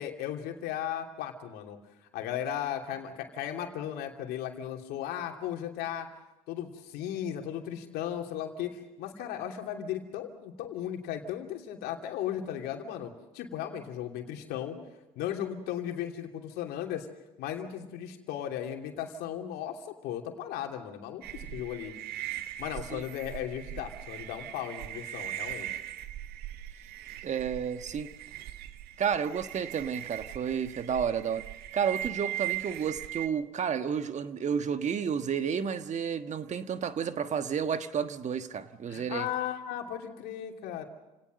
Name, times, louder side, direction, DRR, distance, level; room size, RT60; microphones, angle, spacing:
voice 1, 0.0-1.8 2.1-6.1 6.5-14.8 15.1-17.1 17.4-21.9 22.6-25.7 38.9-40.8, left 10 dB, 65° left, 2.9 m, -36 dB
sound 1, 21.2-33.3, right 13 dB, 60° right, 1.3 m, -40 dB
voice 2, 27.2-28.1 29.0-31.5 31.7-39.3, right 7 dB, 40° right, 1.4 m, -31 dB
28.5 x 18.0 x 6.6 m
hypercardioid pair, 65°, 18 cm